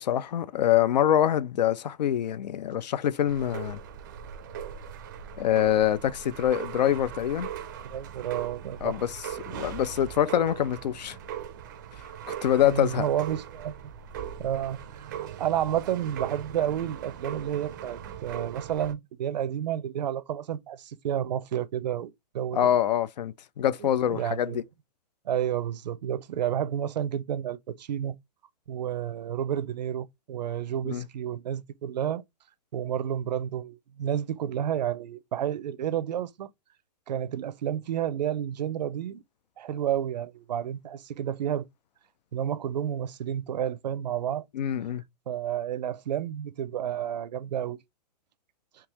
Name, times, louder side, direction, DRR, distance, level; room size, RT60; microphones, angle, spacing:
voice 1, 0.0-3.8 5.4-7.5 8.8-9.2 9.5-11.2 12.3-13.1 22.5-24.6 30.9-31.1 44.5-45.0, left 11 dB, 85° left, 0.5 m, -25 dB
sound 1, 3.3-18.9, right 9 dB, 30° right, 0.4 m, -40 dB
voice 2, 7.8-9.0 12.6-13.7 14.4-22.6 23.8-24.6 25.3-28.2 28.7-32.2 32.7-36.5 37.1-39.2 39.6-41.7 42.3-44.4 45.3-47.8, right 10 dB, 90° right, 0.6 m, -30 dB
3.7 x 2.9 x 2.9 m
hypercardioid pair, 170°, 21 cm